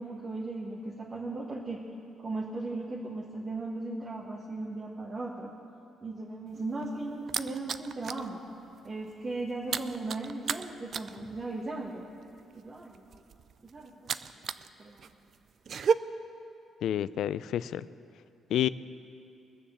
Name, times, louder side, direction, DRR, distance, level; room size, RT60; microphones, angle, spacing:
voice 1, 0.0-1.8 2.2-5.5 6.0-8.4 8.8-12.1 12.5-13.2 13.6-14.3 14.8-15.1, right 2 dB, 40° right, -3 dB, 1.6 m, -37 dB
sound 1, 6.5-8.3 8.6-8.9 9.1-14.7 15.0-15.9, right 7 dB, 55° right, 0.4 m, -33 dB
voice 2, 16.8-17.8 18.5-18.7, left 11 dB, 75° left, 17 dB, 0.3 m, -29 dB
21.0 x 7.0 x 7.1 m, 2.7 s
cardioid pair, 90°, 0 cm